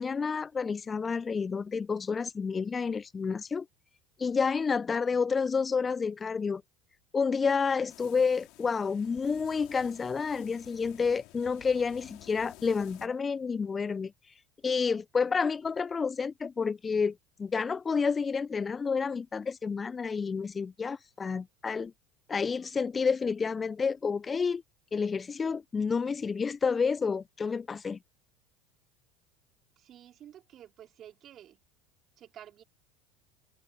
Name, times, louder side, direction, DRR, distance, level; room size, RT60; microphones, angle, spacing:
voice 1, 0.0-3.7 4.2-6.6 7.1-14.1 14.6-21.9 22.3-24.6 24.9-28.0, left 5 dB, 25° left, 0.5 m, -29 dB
sound 1, 7.9-13.1, left 22 dB, 60° left, 2.5 m, -53 dB
voice 2, 29.8-31.6 32.2-32.6, right 11 dB, 45° right, 4.6 m, -51 dB
figure-of-eight pair, 70°, 0 cm